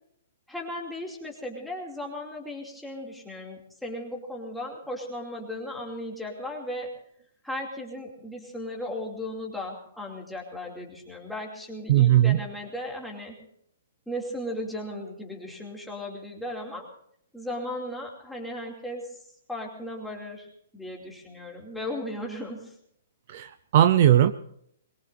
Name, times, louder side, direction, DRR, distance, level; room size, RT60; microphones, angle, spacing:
voice 1, 0.5-6.9 7.4-13.4 14.1-16.9 17.3-19.2 19.5-20.5 20.7-22.7, left 1 dB, ahead, -2 dB, 2.6 m, -36 dB
voice 2, 11.9-12.4 23.3-24.3, right 12 dB, 35° right, 11 dB, 0.6 m, -18 dB
23.0 x 22.5 x 2.6 m, 0.69 s
hypercardioid pair, 180°, 0 cm